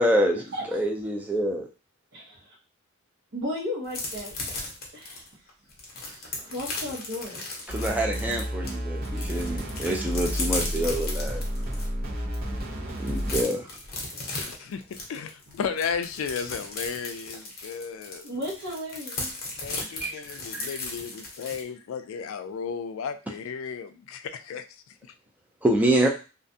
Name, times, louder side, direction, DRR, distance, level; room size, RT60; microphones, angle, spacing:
voice 1, 0.0-1.7 7.7-11.4 13.0-13.6 20.0-20.2 20.5-20.7 25.6-26.1, right 1 dB, 10° right, 0 dB, 0.4 m, -26 dB
voice 2, 2.1-2.5 3.3-4.3 4.9-5.2 6.0-7.4 15.5-15.6 18.2-19.3, left 1 dB, 75° right, -8 dB, 0.9 m, -35 dB
sound 1, 3.9-8.7 9.0-11.9 12.3-12.4 12.7-21.6, left 3 dB, 45° left, 0.7 m, -36 dB
sound 2, 7.7-13.4, equal, 45° right, 0.8 m, -31 dB
voice 3, 14.5-14.8 15.1-18.3 19.6-24.6, left 6 dB, 80° left, 9 dB, 0.3 m, -34 dB
2.4 x 2.2 x 2.6 m, 0.32 s
head